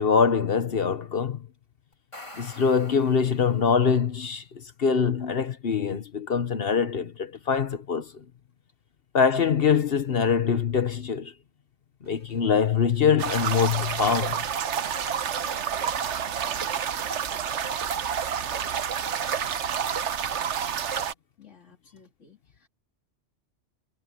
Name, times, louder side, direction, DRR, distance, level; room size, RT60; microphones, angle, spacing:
voice 1, 0.0-1.5 2.4-8.2 9.1-11.3 12.0-14.4, left 6 dB, 55° left, 1.1 m, -24 dB
sound 1, 1.9-3.9, left 1 dB, 25° left, 2.3 m, -46 dB
sound 2, 12.0-16.9, equal, 45° right, 8.0 m, -58 dB
sound 3, 13.2-21.1, right 8 dB, 75° right, 1.2 m, -29 dB
voice 2, 21.4-22.7, left 6 dB, 85° left, 2.9 m, -56 dB
omnidirectional pair, 1.2 m